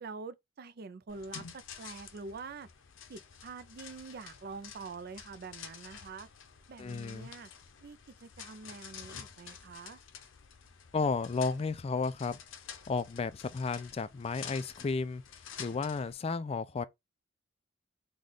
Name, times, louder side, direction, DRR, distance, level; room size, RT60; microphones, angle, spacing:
voice 1, 0.0-2.7 3.1-6.3 6.7-7.5 7.8-10.0, right 4 dB, 55° right, 0.4 m, -45 dB
sound 1, 1.1-16.1, left 7 dB, 85° left, 0.6 m, -50 dB
voice 2, 6.8-7.3 10.9-12.4 12.9-15.2 15.6-16.8, left 4 dB, 30° left, 0.3 m, -33 dB
3.3 x 2.3 x 3.8 m
head